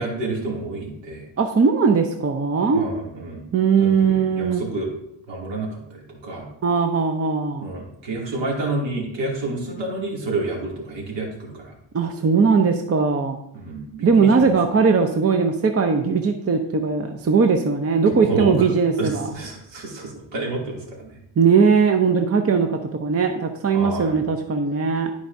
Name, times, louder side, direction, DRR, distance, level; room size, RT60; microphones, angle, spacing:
voice 1, 0.0-1.3 2.7-3.4 3.8-4.9 5.3-6.5 7.6-11.7 13.5-14.5 18.3-18.7 19.0-21.2 23.7-24.2, right 2 dB, 65° right, -2 dB, 2.7 m, -29 dB
voice 2, 1.4-2.8 3.5-4.6 6.6-7.7 11.9-13.4 14.0-19.3 21.4-25.1, right 5 dB, 30° right, 5 dB, 0.7 m, -19 dB
12.5 x 4.8 x 2.7 m, 0.78 s
cardioid pair, 85°, 47 cm